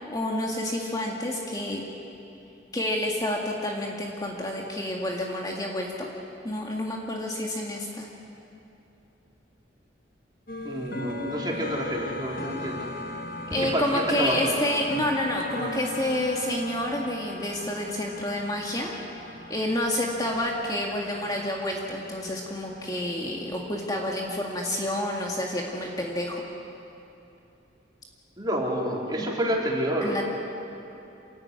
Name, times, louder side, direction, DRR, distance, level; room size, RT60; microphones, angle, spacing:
voice 1, 0.1-1.8 2.7-6.1 6.4-8.1 13.5-26.4 29.2-29.4 30.0-30.2, left 1 dB, 20° left, -1 dB, 2.0 m, -29 dB
sound 1, 10.5-26.5, left 1 dB, 50° left, 1.8 m, -38 dB
voice 2, 10.6-12.9 13.5-14.4 28.4-30.2, equal, 20° right, -2 dB, 3.9 m, -29 dB
28.0 x 15.5 x 9.7 m, 2.9 s
head